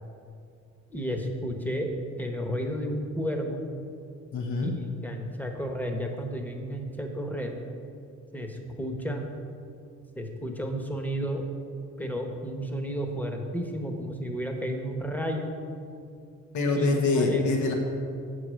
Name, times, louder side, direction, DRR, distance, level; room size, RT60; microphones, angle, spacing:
voice 1, 0.9-1.9 2.2-3.6 4.6-4.7 5.0-7.6 8.3-9.2 10.1-11.5 12.0-15.5 16.7-17.4, equal, 5° left, 3 dB, 1.0 m, -32 dB
voice 2, 4.3-4.7 16.5-17.7, left 3 dB, 70° left, 2 dB, 1.2 m, -25 dB
7.3 x 4.8 x 6.3 m, 2.4 s
cardioid pair, 90°, 30 cm